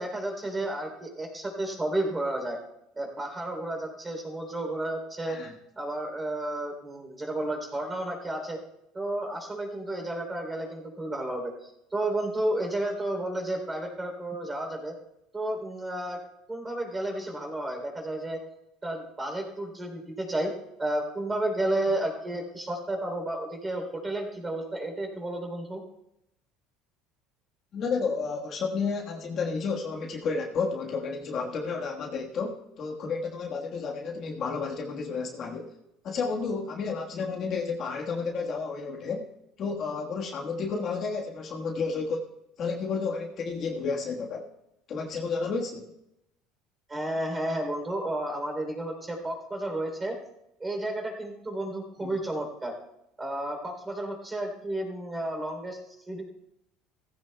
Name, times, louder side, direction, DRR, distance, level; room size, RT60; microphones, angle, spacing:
voice 1, 0.0-2.6 2.9-5.4 5.8-8.6 8.9-14.9 15.3-16.2 16.5-18.4 18.8-20.5 20.8-25.8 46.9-50.1 50.6-52.7 53.2-55.8 56.1-56.2, right 1 dB, 15° right, 3 dB, 3.3 m, -32 dB
voice 2, 27.7-35.7 36.0-39.3 39.6-42.3 42.6-44.5 44.9-45.9 52.0-52.1, left 4 dB, 40° left, 0 dB, 1.5 m, -31 dB
17.5 x 15.5 x 2.3 m, 0.85 s
cardioid pair, 140°, 0 cm